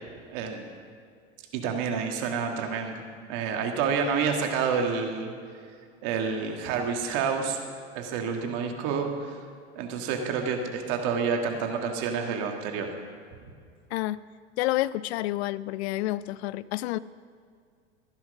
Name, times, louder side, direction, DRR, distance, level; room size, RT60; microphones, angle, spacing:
voice 1, 0.3-0.6 1.5-3.0 3.3-5.3 6.0-7.6 8.0-9.4 9.8-12.9, right 6 dB, 60° right, 3 dB, 2.1 m, -28 dB
voice 2, 13.9-14.2 14.6-17.0, left 16 dB, 65° left, 18 dB, 0.5 m, -29 dB
14.0 x 10.5 x 5.4 m, 2.2 s
hypercardioid pair, 85°, 34 cm